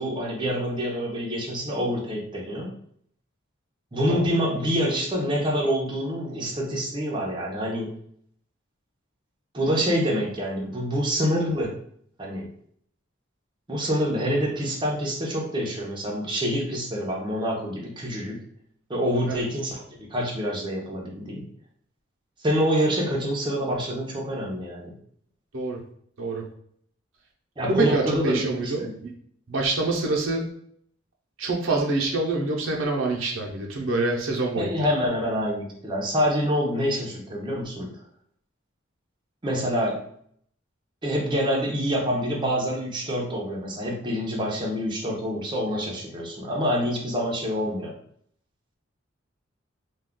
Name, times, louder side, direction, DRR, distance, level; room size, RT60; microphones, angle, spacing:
voice 1, 0.0-2.7 3.9-7.9 9.5-11.7 12.2-12.5 13.7-18.4 18.9-21.5 22.4-25.0 27.6-29.0 34.6-37.9 39.4-40.1 41.0-47.9, equal, 25° right, -2 dB, 0.7 m, -26 dB
voice 2, 27.7-29.1 29.5-30.5 31.4-34.8, right 2 dB, 85° right, 0 dB, 0.7 m, -26 dB
2.3 x 2.3 x 3.6 m, 0.64 s
head